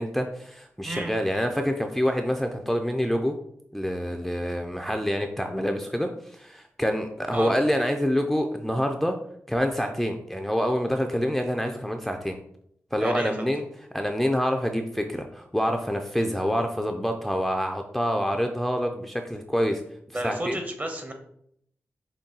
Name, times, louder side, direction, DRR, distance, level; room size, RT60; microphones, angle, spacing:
voice 1, 0.0-3.3 3.7-9.2 9.5-12.4 12.9-13.6 13.9-19.8 20.1-20.6, equal, ahead, 4 dB, 0.4 m, -26 dB
voice 2, 13.0-13.5 20.1-21.1, right 1 dB, 35° right, 5 dB, 0.9 m, -32 dB
5.3 x 2.2 x 3.8 m, 0.70 s
cardioid pair, 70°, 5 cm